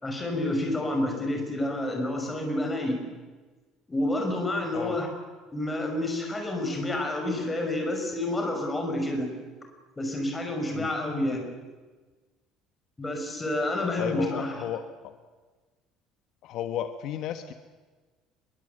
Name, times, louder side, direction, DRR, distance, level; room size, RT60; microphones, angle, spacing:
voice 1, 0.0-3.0 3.9-5.1 5.5-9.3 10.0-11.5 13.0-14.6, left 1 dB, 10° left, 3 dB, 5.7 m, -29 dB
voice 2, 14.0-15.1 16.4-17.5, left 10 dB, 55° left, 8 dB, 1.4 m, -33 dB
26.5 x 22.5 x 8.1 m, 1.3 s
cardioid pair, 155°, 0 cm